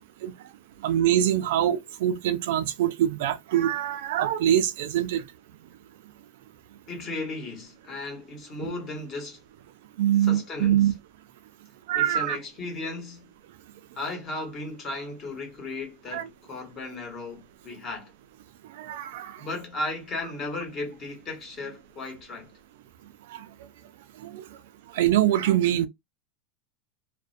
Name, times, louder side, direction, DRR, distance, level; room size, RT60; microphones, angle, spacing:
voice 1, 0.8-5.2 8.6-8.7 10.0-10.9 11.9-12.4 16.1-16.2 18.8-19.4 23.3-23.4 24.3-24.4 24.9-25.9, right 11 dB, 70° right, 0.3 m, -24 dB
voice 2, 6.9-9.4 10.2-10.9 11.9-13.3 14.0-18.1 19.4-22.5, left 2 dB, 25° left, 1.1 m, -35 dB
2.3 x 2.1 x 2.5 m
supercardioid pair, 160°, 0 cm